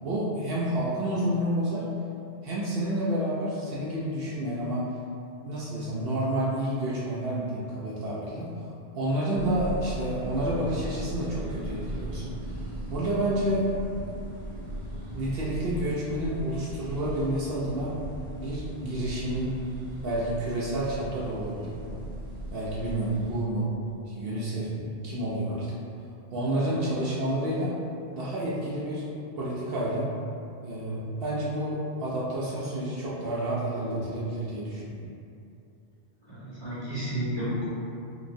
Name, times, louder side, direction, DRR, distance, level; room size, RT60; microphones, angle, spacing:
voice 1, 0.0-1.8 2.4-4.8 5.4-8.5 8.9-12.5 12.9-13.7 15.1-18.0 18.4-19.6 20.0-22.0 22.5-23.7 24.1-25.8 26.3-27.7 28.1-29.0 29.4-30.1 30.6-35.1, right 1 dB, 65° right, -7 dB, 0.7 m, -29 dB
sound 1, 9.3-23.4, right 1 dB, 45° right, 0.3 m, -38 dB
voice 2, 36.2-37.7, equal, 25° left, -14 dB, 1.3 m, -32 dB
3.1 x 3.0 x 2.6 m, 2.6 s
omnidirectional pair, 1.1 m